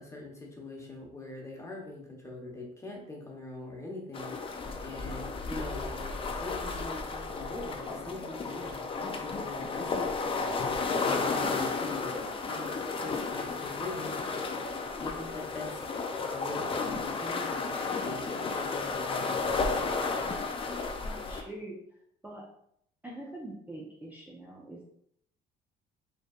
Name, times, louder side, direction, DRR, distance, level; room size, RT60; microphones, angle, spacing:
voice 1, 0.0-10.1 11.0-12.7 12.9-14.2 15.0-15.8 16.3-19.9, left 2 dB, 15° left, -1 dB, 1.1 m, -42 dB
sound 1, 4.1-21.4, left 4 dB, 30° left, 0.6 m, -33 dB
voice 2, 21.0-21.8 22.2-22.5 23.0-24.9, right 1 dB, 10° right, -4 dB, 0.8 m, -44 dB
5.2 x 3.3 x 2.4 m, 0.70 s
cardioid pair, 110°, 17 cm